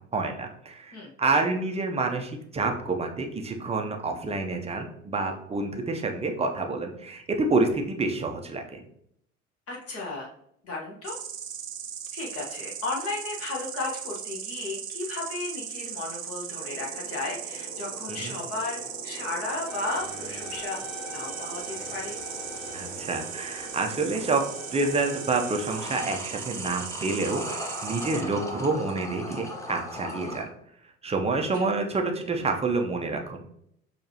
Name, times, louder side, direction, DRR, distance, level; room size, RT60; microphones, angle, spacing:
voice 1, 0.1-8.8 18.1-18.3 22.7-24.4 24.7-30.5 31.0-33.4, right 3 dB, 15° right, 3 dB, 0.6 m, -28 dB
voice 2, 9.7-10.3 10.6-11.2 12.1-22.2 27.9-28.3 30.2-30.4 31.5-31.7, left 3 dB, 40° left, -1 dB, 1.2 m, -35 dB
Insect, 11.0-28.2, right 8 dB, 85° right, 0.5 m, -38 dB
sound 1, 16.6-30.4, left 1 dB, 10° left, 0.9 m, -41 dB
sound 2, 19.7-26.1, left 3 dB, 85° left, 0.9 m, -44 dB
6.5 x 2.8 x 2.8 m, 0.72 s
figure-of-eight pair, 65°, 38 cm